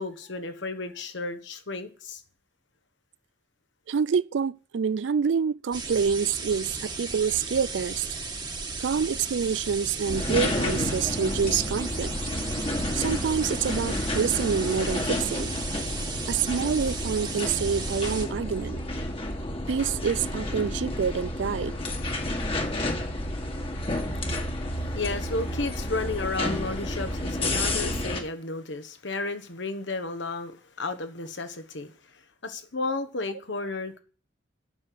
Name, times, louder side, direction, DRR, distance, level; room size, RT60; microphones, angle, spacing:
voice 1, 0.0-2.2 24.9-30.5 30.8-34.0, left 3 dB, 65° left, 1.4 m, -33 dB
voice 2, 3.9-8.1 8.8-12.1 12.9-15.5 16.3-18.8 19.7-21.8, right 6 dB, 70° right, 0.4 m, -27 dB
sound 1, 5.7-18.3, right 4 dB, 25° right, 1.5 m, -35 dB
sound 2, 10.0-28.2, left 1 dB, 30° left, 1.6 m, -30 dB
8.8 x 6.5 x 7.8 m
head